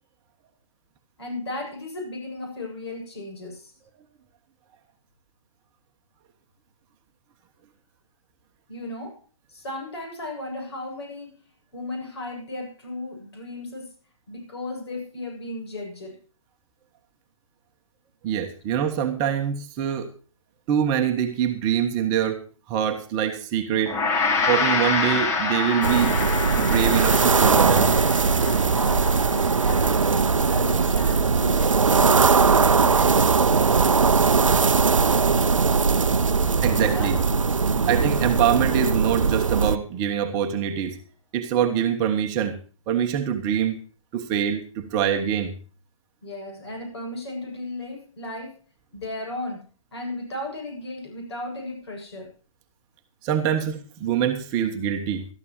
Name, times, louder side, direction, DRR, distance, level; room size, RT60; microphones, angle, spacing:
voice 1, 1.2-3.7 8.7-11.4 11.7-13.9 14.3-16.2 28.4-32.4 32.7-34.0 36.6-37.2 37.6-38.0 46.2-48.6 48.9-52.3, left 2 dB, 50° left, 3 dB, 7.9 m, -35 dB
voice 2, 18.2-20.1 20.7-22.4 22.7-24.0 24.5-26.1 26.6-27.9 36.6-37.2 37.9-41.0 41.3-42.6 42.9-43.8 44.1-45.5 53.2-55.3, right 9 dB, 20° right, 5 dB, 1.3 m, -24 dB
Gong, 23.9-33.2, left 4 dB, 15° left, 1.5 m, -28 dB
sound 1, 25.8-39.8, right 5 dB, 70° right, 0.7 m, -20 dB
18.5 x 13.5 x 3.1 m, 0.37 s
figure-of-eight pair, 130°, 17 cm